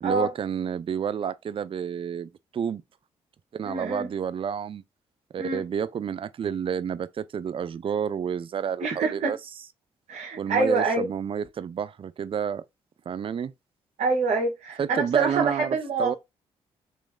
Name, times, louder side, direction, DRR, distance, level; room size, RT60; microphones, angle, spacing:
voice 1, 0.0-2.8 3.5-4.8 5.3-9.4 10.4-12.6 13.1-13.5 14.8-16.2, right 7 dB, 45° right, 0.4 m, -30 dB
voice 2, 3.6-4.1 5.4-5.7 8.8-9.3 10.1-11.1 14.0-16.2, right 3 dB, 60° right, 1.4 m, -26 dB
3.1 x 3.1 x 3.6 m
supercardioid pair, 50°, 13 cm